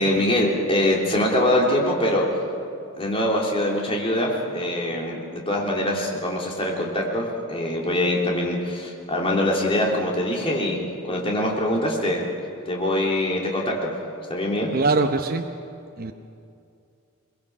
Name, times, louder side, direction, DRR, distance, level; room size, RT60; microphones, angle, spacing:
voice 1, 0.0-2.3 3.0-10.8 11.1-12.3 12.7-13.9 14.3-14.7, left 1 dB, 25° left, -2 dB, 3.1 m, -23 dB
voice 2, 14.7-15.5 16.0-16.1, right 3 dB, 45° right, 5 dB, 0.8 m, -22 dB
22.0 x 20.5 x 6.1 m, 2.5 s
head